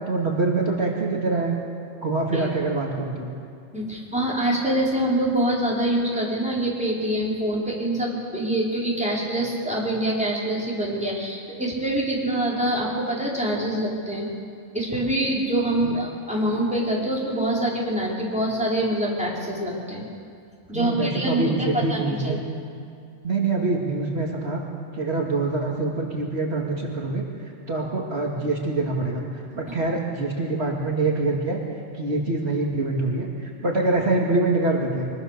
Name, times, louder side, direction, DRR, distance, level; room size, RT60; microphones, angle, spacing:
voice 1, 0.1-1.6 2.0-3.3 15.8-16.0 20.7-22.4 23.2-24.6 24.9-27.2 27.7-29.2 29.5-31.6 31.9-35.1, right 3 dB, 55° right, -2 dB, 2.5 m, -25 dB
voice 2, 3.7-14.3 14.7-20.1 20.7-22.4, right 1 dB, 5° right, -5 dB, 4.5 m, -25 dB
24.0 x 22.5 x 6.7 m, 2.4 s
omnidirectional pair, 1.3 m